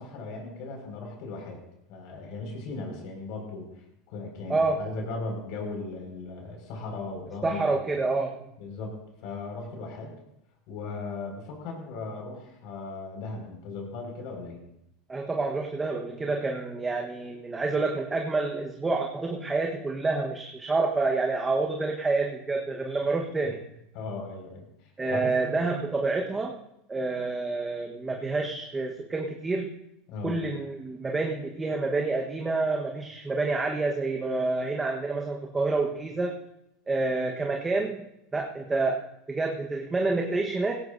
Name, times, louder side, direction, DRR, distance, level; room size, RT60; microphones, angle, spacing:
voice 1, 0.0-1.6 1.9-3.7 4.1-7.8 8.6-9.0 9.2-10.1 10.7-14.6 23.9-24.7 25.1-25.5 30.1-30.4, left 3 dB, 65° left, 1 dB, 5.2 m, -37 dB
voice 2, 7.4-8.4 15.1-23.6 25.0-26.6 26.9-29.8 30.2-36.4 36.9-38.0 38.3-39.0 39.3-40.8, right 3 dB, 15° right, 1 dB, 1.2 m, -28 dB
17.0 x 17.0 x 2.7 m, 0.81 s
supercardioid pair, 120°, 0 cm